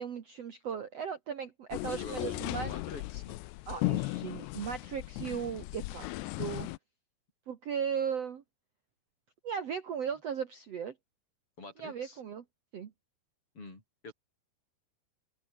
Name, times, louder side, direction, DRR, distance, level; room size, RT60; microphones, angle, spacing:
voice 1, 0.0-2.7 3.7-6.1 6.4-6.7 7.5-8.4 9.4-10.9 11.8-12.4 12.7-12.9, right 7 dB, 75° right, 1.4 m, -37 dB
sound 1, 1.7-6.8, left 20 dB, 85° left, 2.5 m, -36 dB
voice 2, 1.8-3.4 11.6-12.2 13.5-14.1, left 3 dB, 30° left, 7.2 m, -47 dB
open air
omnidirectional pair, 5.6 m